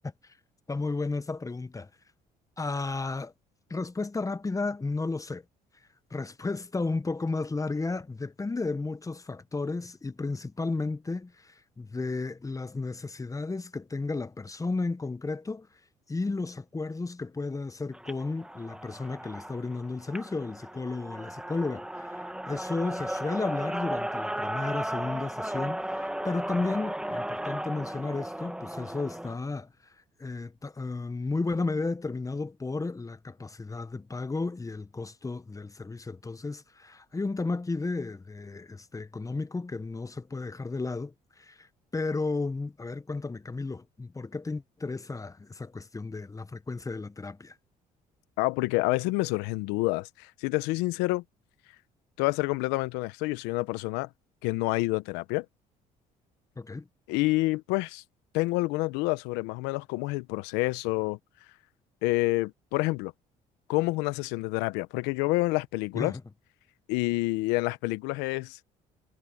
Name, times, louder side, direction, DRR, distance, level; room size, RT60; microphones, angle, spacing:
voice 1, 0.0-0.3 0.7-1.9 2.6-3.3 3.7-5.4 6.1-15.7 16.1-29.7 30.2-47.5 56.6-56.9 65.9-66.2, left 3 dB, 20° left, 1.1 m, -33 dB
sound 1, 17.9-29.3, right 1 dB, 5° right, 1.6 m, -35 dB
voice 2, 48.4-51.2 52.2-54.1 54.4-55.4 57.1-58.0 58.3-61.2 62.0-63.1 63.7-66.1 66.9-68.6, left 22 dB, 85° left, 0.9 m, -28 dB
supercardioid pair, 70°, 17 cm